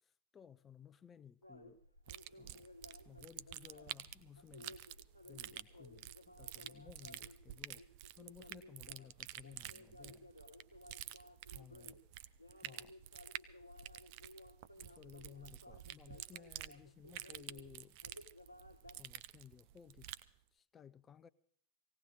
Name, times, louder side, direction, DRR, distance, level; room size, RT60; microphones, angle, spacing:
voice 1, 0.3-1.8 2.4-2.7 3.0-4.8 5.2-6.1 6.4-7.8 8.1-10.3 11.5-12.0 12.6-12.9 14.7-18.0 19.0-20.2 20.5-21.3, left 8 dB, 20° left, 0.5 m, -58 dB
sound 1, 1.4-19.0, left 1 dB, 85° left, 1.0 m, -58 dB
sound 2, 2.1-20.3, right 15 dB, 45° right, 0.5 m, -50 dB
19.0 x 17.0 x 3.8 m
figure-of-eight pair, 90°, 0 cm